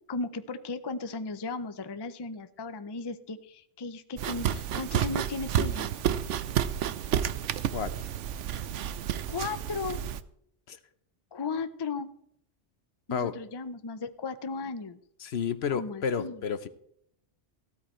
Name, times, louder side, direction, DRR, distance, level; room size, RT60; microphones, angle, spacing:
voice 1, 0.1-5.9 9.3-10.0 11.3-12.1 13.1-15.0 15.7-16.4, left 4 dB, 30° left, 11 dB, 0.5 m, -36 dB
sound 1, 4.2-10.2, right 10 dB, 80° right, 1.0 m, -30 dB
voice 2, 15.2-16.7, left 6 dB, 65° left, 13 dB, 1.0 m, -31 dB
15.5 x 13.0 x 3.2 m, 0.71 s
omnidirectional pair, 1.2 m